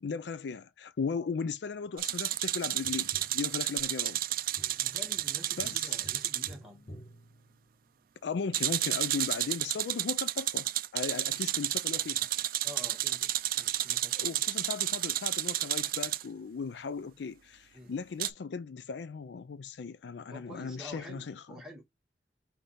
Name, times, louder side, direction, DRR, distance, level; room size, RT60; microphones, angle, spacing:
voice 1, 0.0-4.2 5.6-5.9 8.2-12.3 14.1-21.4, left 5 dB, 70° left, 0.4 m, -37 dB
sound 1, 2.0-6.5 8.5-16.2 18.2-18.3, right 14 dB, 55° right, 0.4 m, -31 dB
Tap, 2.8-8.1 10.7-10.8, equal, 40° left, 1.1 m, -53 dB
voice 2, 4.8-7.0 10.1-10.2 12.6-14.5 17.7-18.0 20.3-21.9, left 1 dB, 5° right, 1.9 m, -48 dB
5.5 x 2.8 x 3.3 m
head